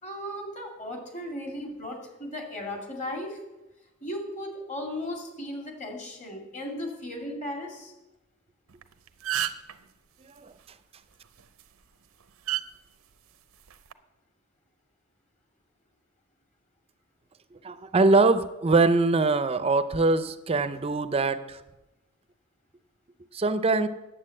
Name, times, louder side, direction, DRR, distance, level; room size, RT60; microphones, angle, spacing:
voice 1, 0.0-3.4 4.0-7.9, left 1 dB, 35° left, 2 dB, 2.3 m, -36 dB
sound 1, 8.7-8.8 9.1-9.7 11.4-11.6 12.5-12.6 13.7-13.9, right 13 dB, 90° right, 0.6 m, -29 dB
voice 2, 10.2-10.5 17.5-21.6 23.3-23.9, right 3 dB, 30° right, 13 dB, 0.5 m, -23 dB
9.6 x 7.9 x 7.7 m, 1.0 s
head